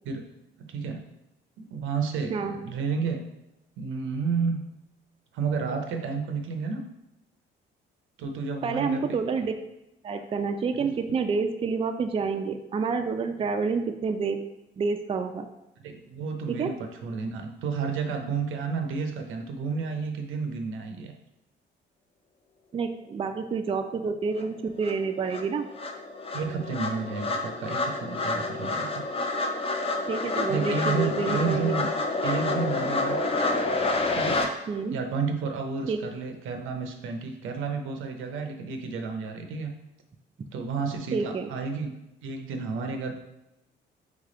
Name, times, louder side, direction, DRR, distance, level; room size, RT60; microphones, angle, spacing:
voice 1, 0.6-1.0 1.6-3.2 3.8-4.6 5.3-6.8 8.2-9.2 10.8-10.9 15.8-16.7 17.0-21.1 26.3-29.1 30.5-31.9 32.2-33.2 34.1-34.5 34.9-39.7 40.5-42.0 42.2-43.2, right 5 dB, 85° right, 4 dB, 0.6 m, -31 dB
voice 2, 8.6-9.5 10.0-14.4 14.8-15.5 16.5-16.7 22.7-25.7 30.1-31.8 34.7-35.0 35.9-36.0 41.1-41.5, right 5 dB, 30° right, 6 dB, 0.4 m, -28 dB
sound 1, 24.4-24.5 24.8-34.5, left 2 dB, 30° left, 0.6 m, -28 dB
3.6 x 3.3 x 3.7 m, 0.92 s
cardioid pair, 90°, 20 cm